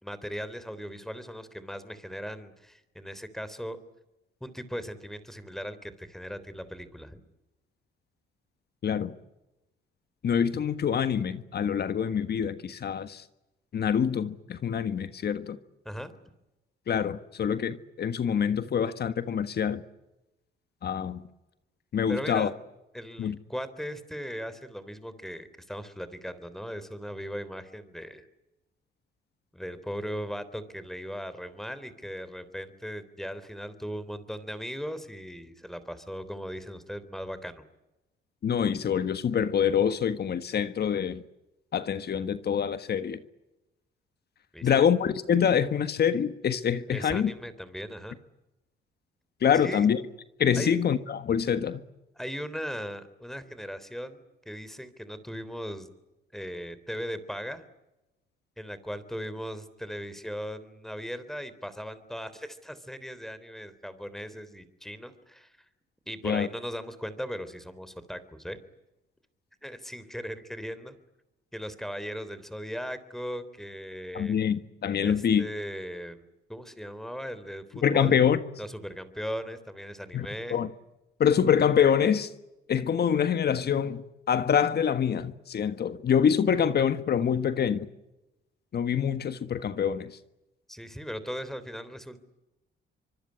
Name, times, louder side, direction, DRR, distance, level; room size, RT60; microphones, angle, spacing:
voice 1, 0.0-3.8 4.4-7.2 15.9-16.1 22.1-22.5 22.9-28.3 29.5-37.6 44.5-44.9 46.9-48.2 49.6-49.9 50.6-50.8 52.2-55.9 56.3-57.7 58.6-65.5 66.1-68.6 69.6-71.0 71.5-74.4 75.0-78.2 78.6-80.6 90.7-92.2, equal, ahead, 3.5 m, -38 dB
voice 2, 8.8-9.1 10.2-13.2 13.7-15.6 16.9-19.8 20.8-21.2 21.9-22.5 23.2-23.4 38.4-41.2 41.7-43.2 44.6-47.3 49.4-50.0 50.4-51.8 66.2-66.5 74.1-75.4 77.8-78.4 80.1-80.7 81.2-82.3 82.7-87.9 88.7-90.1, left 8 dB, 55° left, 1.5 m, -25 dB
25.0 x 24.5 x 9.8 m
cardioid pair, 90°, 20 cm